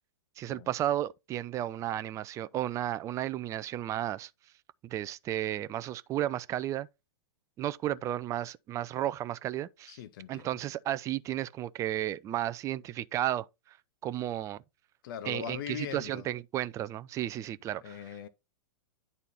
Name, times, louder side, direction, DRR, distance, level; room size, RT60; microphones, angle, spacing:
voice 1, 0.4-4.3 4.8-6.9 7.6-10.0 10.3-13.8 14.0-14.6 15.2-18.0, right 13 dB, 20° right, 0.4 m, -33 dB
voice 2, 9.9-10.5 15.0-16.3 17.8-18.3, left 9 dB, 50° left, 0.6 m, -40 dB
9.8 x 4.2 x 4.1 m
figure-of-eight pair, 105°, 14 cm